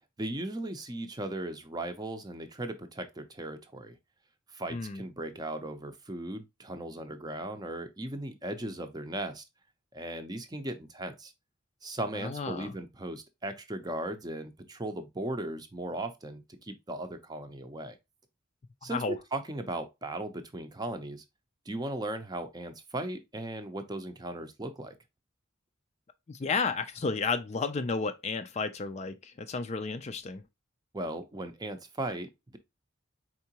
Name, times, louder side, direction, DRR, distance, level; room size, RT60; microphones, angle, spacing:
voice 1, 0.2-4.0 4.5-9.4 9.9-11.3 11.8-18.0 18.8-19.0 19.3-21.2 21.7-24.9 30.9-32.6, right 1 dB, 20° right, 0.6 m, -37 dB
voice 2, 4.7-5.0 12.1-12.7 18.9-19.2 26.3-30.4, left 4 dB, 35° left, 0.4 m, -32 dB
4.5 x 3.7 x 2.8 m
head